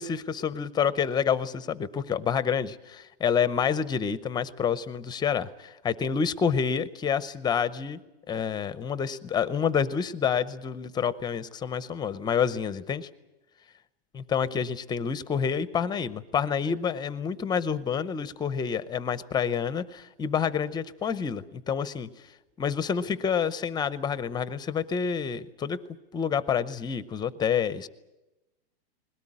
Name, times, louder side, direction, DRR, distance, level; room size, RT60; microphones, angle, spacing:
voice 1, 0.0-8.0 8.3-13.1 14.3-22.1 22.6-25.8 26.1-27.9, left 7 dB, 15° left, 14 dB, 0.7 m, -28 dB
21.5 x 18.0 x 9.9 m, 1.0 s
supercardioid pair, 145°, 31 cm